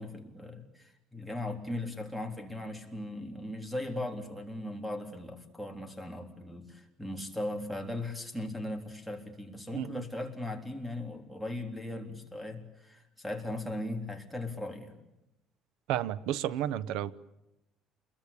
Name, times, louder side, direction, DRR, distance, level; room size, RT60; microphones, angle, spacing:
voice 1, 0.0-15.0, left 1 dB, ahead, 3.6 m, -38 dB
voice 2, 9.7-10.0 15.9-17.1, right 11 dB, 80° right, 1.0 m, -32 dB
28.5 x 22.0 x 8.8 m
cardioid pair, 135°, 0 cm